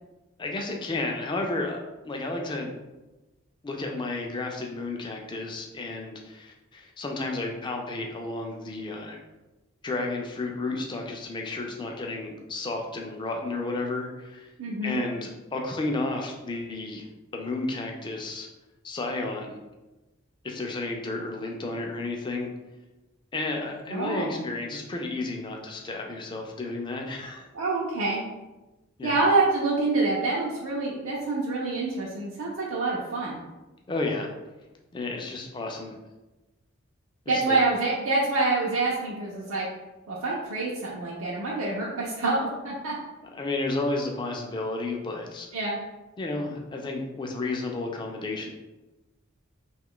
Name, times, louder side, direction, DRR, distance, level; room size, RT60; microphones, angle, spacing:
voice 1, 0.4-2.8 3.6-9.2 9.8-14.5 14.8-17.1 17.3-18.5 18.8-19.6 20.4-22.5 23.3-27.5 29.0-29.2 33.9-34.3 34.9-36.0 37.3-37.6 43.2-45.5 46.2-48.5, left 2 dB, 20° left, 1 dB, 0.4 m, -32 dB
voice 2, 14.6-15.0 23.9-24.4 27.5-28.2 29.0-33.4 37.3-39.7 40.1-43.0 45.5-45.8, right 3 dB, 85° right, -4 dB, 0.5 m, -26 dB
2.9 x 2.3 x 3.6 m, 1.1 s
head